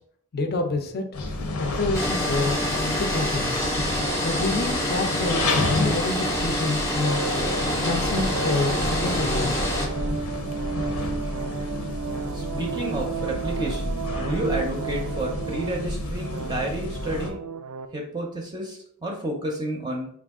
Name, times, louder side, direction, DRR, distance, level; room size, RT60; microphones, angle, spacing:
voice 1, 0.3-1.0 1.7-3.5 4.2-7.3 7.8-9.6, left 2 dB, 45° left, 6 dB, 0.5 m, -28 dB
sound 1, 1.1-17.3, left 2 dB, 80° left, 0.7 m, -30 dB
sound 2, 1.9-9.9, left 1 dB, 15° left, 0.7 m, -27 dB
sound 3, 3.9-17.9, right 6 dB, 75° right, 0.4 m, -34 dB
voice 2, 12.3-17.4 17.9-20.1, right 1 dB, 20° right, 0 dB, 0.6 m, -30 dB
4.3 x 2.4 x 3.5 m, 0.65 s
head